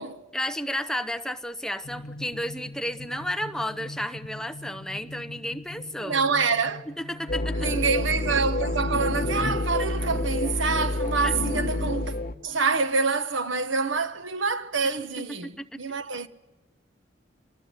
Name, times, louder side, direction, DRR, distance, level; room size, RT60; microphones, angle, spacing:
voice 1, 0.3-6.2 7.0-7.7 11.2-11.3 15.4-15.8, left 1 dB, 5° left, 0.8 m, -32 dB
sound 1, 1.8-13.0, left 2 dB, 80° left, 1.3 m, -44 dB
Wind instrument woodwind instrument, 5.8-9.2 9.5-12.7, equal, 15° right, 1.9 m, -51 dB
voice 2, 6.0-6.8 7.6-12.1 12.4-16.3, right 4 dB, 90° right, 1.3 m, -26 dB
sound 2, 7.3-12.3, left 2 dB, 50° left, 1.3 m, -28 dB
26.5 x 20.0 x 8.1 m
head